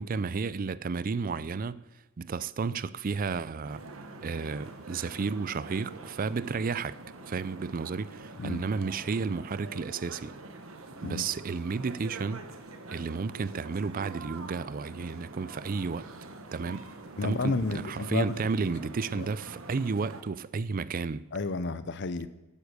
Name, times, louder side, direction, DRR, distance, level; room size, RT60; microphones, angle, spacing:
voice 1, 0.0-1.8 2.2-3.8 4.2-7.0 7.3-10.3 11.0-12.5 12.9-16.1 16.5-16.8 17.2-21.3, right 4 dB, 45° right, 0.4 m, -32 dB
sound 1, 3.6-20.2, right 2 dB, 85° right, 1.3 m, -45 dB
voice 2, 17.2-18.4 19.1-19.3 21.3-22.3, left 3 dB, 60° left, 0.7 m, -31 dB
11.0 x 9.9 x 6.6 m
head